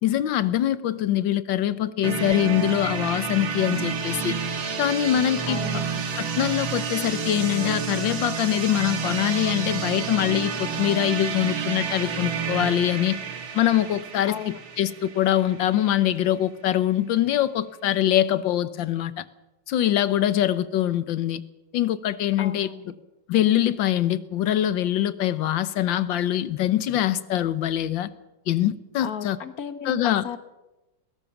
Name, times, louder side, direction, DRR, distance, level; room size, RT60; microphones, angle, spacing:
voice 1, 0.0-4.3 4.8-5.6 6.2-13.2 13.5-19.2 19.7-21.4 21.7-22.7 23.3-28.1 28.5-29.4 29.8-30.2, left 12 dB, 75° left, 16 dB, 1.6 m, -23 dB
sound 1, 2.0-15.8, right 6 dB, 90° right, 2.8 m, -30 dB
voice 2, 5.5-6.0 14.3-14.6 22.4-22.8 29.0-30.4, left 8 dB, 50° left, 11 dB, 1.6 m, -35 dB
20.5 x 17.5 x 7.2 m, 1.0 s
omnidirectional pair, 2.1 m